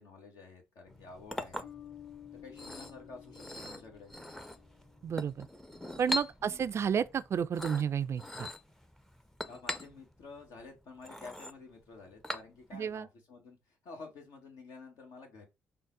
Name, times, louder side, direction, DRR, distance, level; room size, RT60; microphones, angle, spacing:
voice 1, 0.0-1.7 2.4-4.1 6.4-6.6 9.5-15.5, left 4 dB, 65° left, 1.3 m, -50 dB
Chink clink, 0.9-12.9, left 1 dB, 5° left, 0.6 m, -43 dB
Bass guitar, 1.6-5.1, left 11 dB, 50° left, 1.4 m, -53 dB
voice 2, 5.0-5.5 6.0-8.5 12.7-13.1, right 7 dB, 45° right, 0.3 m, -31 dB
3.9 x 2.0 x 3.7 m
hypercardioid pair, 55°, 6 cm